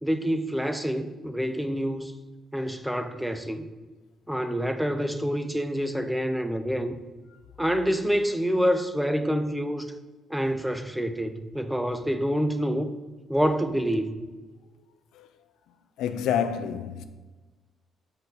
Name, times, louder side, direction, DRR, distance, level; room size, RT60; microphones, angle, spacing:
voice 1, 0.0-2.1 2.5-3.7 4.3-7.0 7.6-9.9 10.3-12.9 13.3-14.2, equal, 5° right, 0.5 m, -27 dB
voice 2, 16.0-17.0, left 8 dB, 90° left, 0.4 m, -28 dB
6.8 x 4.3 x 4.0 m
cardioid pair, 90°, 0 cm